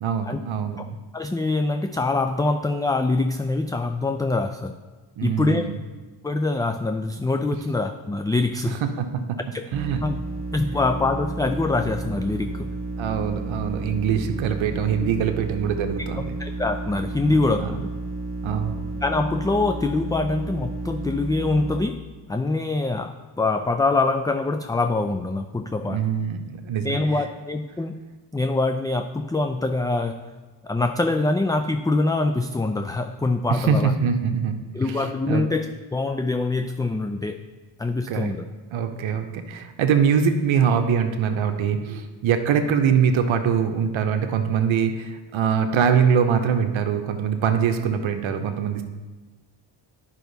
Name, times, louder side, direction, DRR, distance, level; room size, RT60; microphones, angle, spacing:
voice 1, 0.0-0.8 5.2-5.8 8.7-9.4 9.7-10.0 13.0-16.4 17.3-17.8 18.4-18.8 25.8-27.2 33.5-34.6 34.8-35.5 38.1-38.3 38.7-48.8, right 7 dB, 75° right, 7 dB, 0.9 m, -23 dB
voice 2, 1.1-4.7 5.2-5.6 6.2-8.8 9.5-9.6 10.0-10.2 10.5-12.7 16.4-17.8 19.0-22.0 22.3-26.0 26.8-28.0 28.3-30.2 30.6-33.9 34.7-37.4 37.8-38.5, left 3 dB, 10° left, 7 dB, 0.3 m, -24 dB
sound 1, 9.7-21.8, right 2 dB, 25° right, 1.5 m, -32 dB
9.2 x 5.7 x 4.0 m, 1.3 s
cardioid pair, 65°, 47 cm